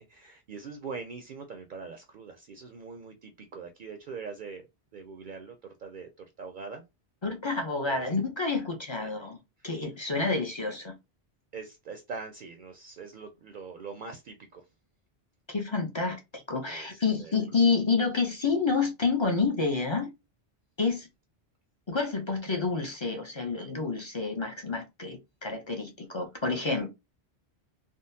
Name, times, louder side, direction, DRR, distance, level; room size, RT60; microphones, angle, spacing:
voice 1, 0.0-4.7 4.9-6.8 7.8-8.1 9.0-9.1 11.5-14.6 16.7-17.4, right 5 dB, 60° right, 0.6 m, -42 dB
voice 2, 7.2-10.9 15.5-20.1 20.8-21.1 21.9-26.9, left 4 dB, 35° left, 0.5 m, -29 dB
3.7 x 2.0 x 2.6 m
omnidirectional pair, 1.1 m